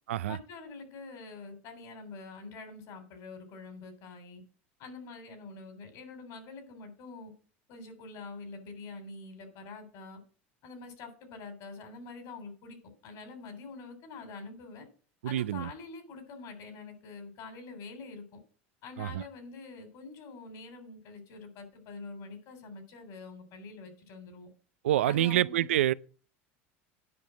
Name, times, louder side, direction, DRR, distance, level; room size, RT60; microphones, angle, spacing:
voice 1, 0.3-4.4 4.8-7.3 7.7-10.2 10.6-12.8 13.0-14.8 15.2-18.4 18.8-24.5 25.0-25.7, left 4 dB, 60° left, 3.4 m, -45 dB
voice 2, 15.2-15.7 19.0-19.2 24.8-25.9, right 13 dB, 85° right, 0.4 m, -27 dB
9.6 x 5.3 x 7.1 m
hypercardioid pair, 85°, 7 cm